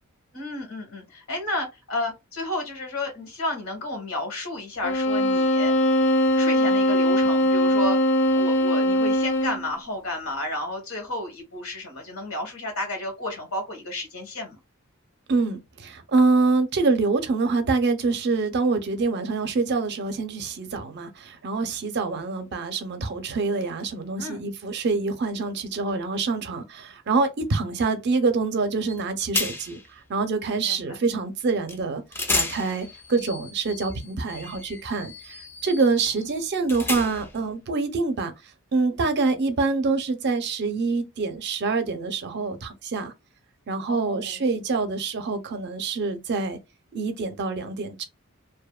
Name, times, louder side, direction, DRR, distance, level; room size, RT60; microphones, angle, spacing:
voice 1, 0.3-5.7 6.3-8.0 8.3-14.6 24.2-24.5 30.7-31.0 43.9-44.4, left 1 dB, 80° left, 1.2 m, -32 dB
sound 1, 4.8-9.7, equal, 60° left, 0.5 m, -21 dB
voice 2, 15.3-29.8 30.1-32.0 32.3-35.4 35.6-38.3 38.7-43.1 43.7-46.6 46.9-48.1, right 4 dB, 50° right, 0.5 m, -25 dB
sound 2, 28.9-29.0 29.3-29.9 31.7-31.8 32.1-37.4, left 3 dB, 10° left, 0.3 m, -32 dB
2.6 x 2.1 x 2.3 m
head